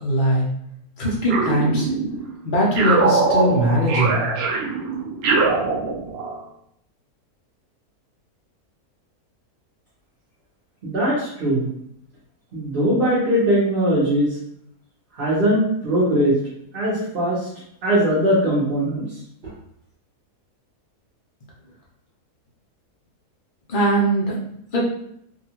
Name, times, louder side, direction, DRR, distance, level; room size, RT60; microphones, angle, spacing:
voice 1, 0.0-0.5 1.0-1.9 2.4-4.2 23.7-24.4 24.7-24.8, equal, 60° left, -4 dB, 0.5 m, -20 dB
sound 1, 1.3-2.3 2.8-6.4, right 4 dB, 90° right, 0.5 m, -22 dB
voice 2, 10.8-11.7 12.5-14.3 15.2-16.3 16.7-17.5 17.8-19.0, equal, 45° right, -9 dB, 0.8 m, -20 dB
2.7 x 2.3 x 2.8 m, 0.71 s
omnidirectional pair, 1.7 m